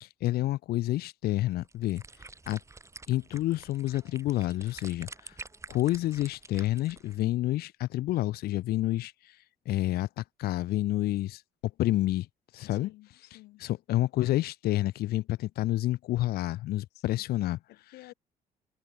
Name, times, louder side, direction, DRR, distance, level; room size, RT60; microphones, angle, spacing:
voice 1, 0.0-2.0 2.5-2.6 3.1-5.3 5.7-9.1 9.7-11.4 11.8-12.3 12.5-12.9 13.6-17.6, left 15 dB, 65° left, 0.6 m, -29 dB
sound 1, 1.5-7.2, right 3 dB, 15° right, 2.6 m, -48 dB
voice 2, 12.7-13.7 16.9-17.2 17.7-18.1, left 18 dB, 85° left, 3.7 m, -52 dB
cardioid pair, 110°, 17 cm